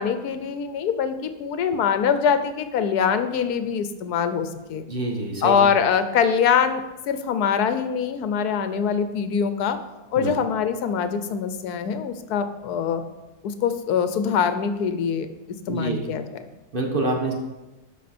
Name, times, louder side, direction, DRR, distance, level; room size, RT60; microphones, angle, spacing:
voice 1, 0.0-4.8 5.4-9.8 10.1-13.0 13.4-15.3 15.7-16.2, left 7 dB, 80° left, 10 dB, 1.2 m, -23 dB
voice 2, 4.9-5.6 10.2-10.3 15.7-16.0 16.7-17.3, right 2 dB, 35° right, 1 dB, 1.4 m, -26 dB
12.5 x 5.8 x 4.3 m, 1.1 s
omnidirectional pair, 1.6 m